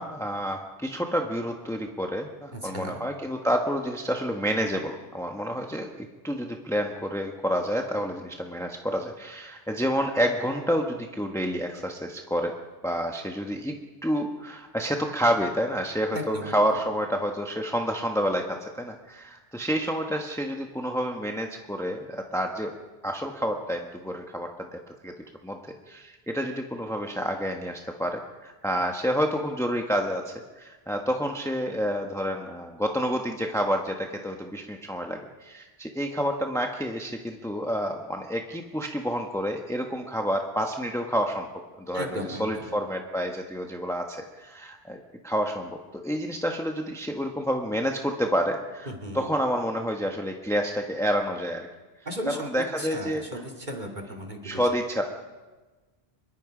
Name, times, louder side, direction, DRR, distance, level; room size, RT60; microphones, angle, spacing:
voice 1, 0.0-12.5 12.8-13.7 14.0-22.7 23.0-25.1 25.4-25.6 25.9-41.5 41.9-51.7 52.3-53.2 54.4-55.0, equal, 5° left, 2 dB, 1.2 m, -29 dB
voice 2, 2.5-3.1 16.1-16.6 41.9-42.7 48.9-49.3 52.1-54.6, equal, 45° right, 4 dB, 2.5 m, -36 dB
25.0 x 22.5 x 5.1 m, 1.2 s
omnidirectional pair, 1.1 m